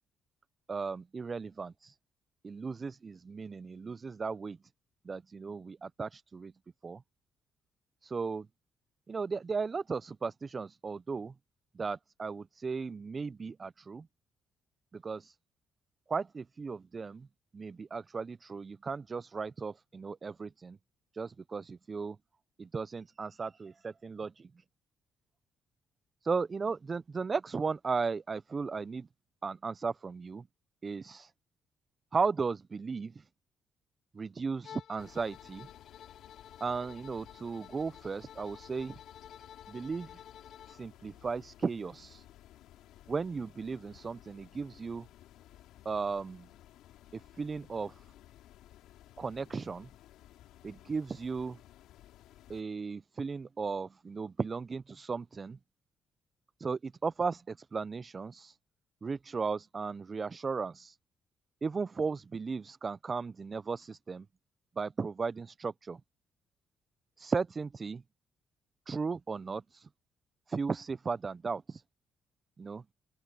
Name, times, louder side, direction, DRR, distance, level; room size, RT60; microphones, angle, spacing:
voice 1, 0.7-2.0 2.4-4.6 5.1-6.5 6.8-7.0 8.0-8.5 9.1-11.3 11.7-14.1 14.9-15.4 16.1-17.3 17.5-20.8 21.1-22.2 22.6-24.6 26.2-29.1 29.4-30.5 30.8-31.3 32.1-33.3 34.1-35.7 36.6-39.0 39.7-40.2 40.7-42.2 43.1-45.1 45.8-46.5 47.1-48.1 49.2-49.9 50.6-51.6 52.5-55.6 56.6-58.6 59.0-61.0 61.6-64.3 64.8-66.0 67.2-68.0 68.9-69.9 70.5-71.8 72.6-72.8, right 4 dB, 35° right, 0.4 m, -36 dB
Bowed string instrument, 34.6-40.9, left 9 dB, 65° left, 4.1 m, -52 dB
sound 1, 35.0-52.6, left 13 dB, 90° left, 3.0 m, -57 dB
open air
cardioid pair, 90°, 0 cm